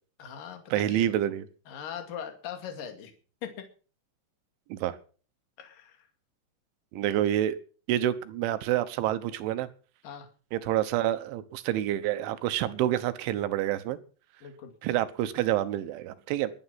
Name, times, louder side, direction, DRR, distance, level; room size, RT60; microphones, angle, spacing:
voice 1, 0.2-1.1 1.7-3.1 3.4-3.6 5.6-6.1 10.0-10.3 14.4-14.7, left 8 dB, 55° left, 6 dB, 3.6 m, -40 dB
voice 2, 0.7-1.5 4.7-5.0 6.9-7.6 7.9-9.7 10.5-14.0 14.8-16.5, right 12 dB, 85° right, 12 dB, 3.6 m, -28 dB
21.5 x 9.2 x 5.9 m, 0.39 s
omnidirectional pair, 5.3 m